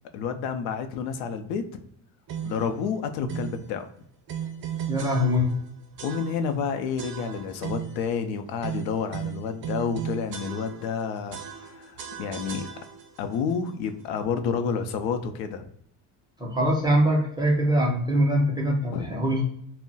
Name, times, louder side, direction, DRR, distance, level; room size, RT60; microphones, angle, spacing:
voice 1, 0.1-1.8 2.4-3.9 6.0-12.6 13.2-15.7 18.9-19.1, left 6 dB, 85° left, 8 dB, 0.5 m, -30 dB
sound 1, 2.3-2.7 3.3-3.6 4.3-5.7 6.0-6.6 7.0-8.0 8.6-11.0 11.3-13.2, right 8 dB, 55° right, 0.6 m, -36 dB
voice 2, 4.9-5.5 16.4-19.4, equal, 10° right, -1 dB, 0.4 m, -23 dB
2.3 x 2.0 x 3.8 m, 0.70 s
cardioid pair, 140°, 43 cm